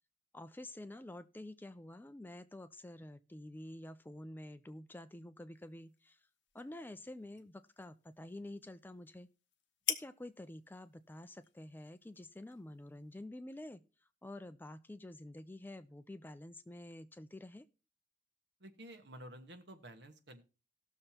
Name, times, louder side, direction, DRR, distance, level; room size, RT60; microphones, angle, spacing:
voice 1, 0.3-6.2 6.5-9.3 9.9-13.8 14.2-17.7, left 1 dB, 10° left, 12 dB, 0.4 m, -49 dB
sound 1, 5.5-13.3, left 9 dB, 70° left, 0.8 m, -47 dB
voice 2, 18.6-20.4, right 1 dB, 65° right, 6 dB, 1.3 m, -52 dB
18.0 x 6.6 x 2.9 m, 0.35 s
head